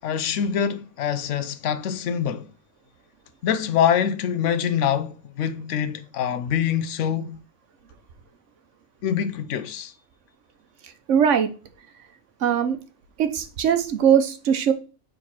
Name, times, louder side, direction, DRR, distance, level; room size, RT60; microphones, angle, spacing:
voice 1, 0.0-2.5 3.4-7.4 9.0-9.9, left 8 dB, 85° left, 1.0 m, -25 dB
voice 2, 11.1-11.5 12.4-12.8 13.2-14.7, right 8 dB, 85° right, 1.1 m, -20 dB
4.6 x 3.7 x 5.5 m
omnidirectional pair, 1.2 m